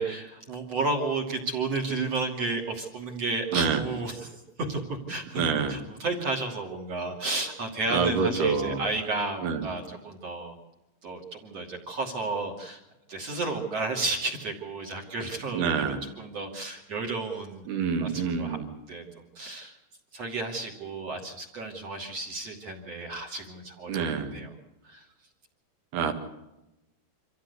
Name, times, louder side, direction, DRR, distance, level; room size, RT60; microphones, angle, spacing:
voice 1, 0.0-5.4 5.7-10.6 11.0-12.8 13.1-17.7 18.0-18.6 18.9-19.7 20.1-24.5 24.8-25.0, right 3 dB, 40° right, 1 dB, 3.1 m, -32 dB
voice 2, 5.4-5.8 7.9-8.8 9.4-9.6 15.5-16.0 17.7-18.7 23.9-24.3 25.9-26.1, right 6 dB, 60° right, 6 dB, 3.5 m, -26 dB
26.5 x 15.0 x 8.3 m, 0.96 s
omnidirectional pair, 5.6 m